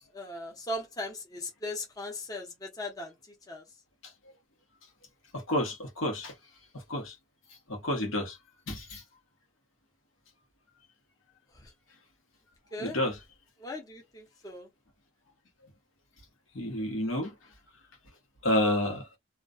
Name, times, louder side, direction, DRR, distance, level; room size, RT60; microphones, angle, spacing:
voice 1, 0.1-3.1 3.5-3.6 11.6-11.7 12.7-13.0 13.6-14.7, left 1 dB, 20° left, 0.6 m, -38 dB
voice 2, 5.3-6.3 6.9-7.2 7.7-8.4 8.7-9.0 12.8-13.2 16.5-17.3 18.4-19.1, left 1 dB, 80° left, 1.0 m, -29 dB
2.3 x 2.2 x 2.4 m
head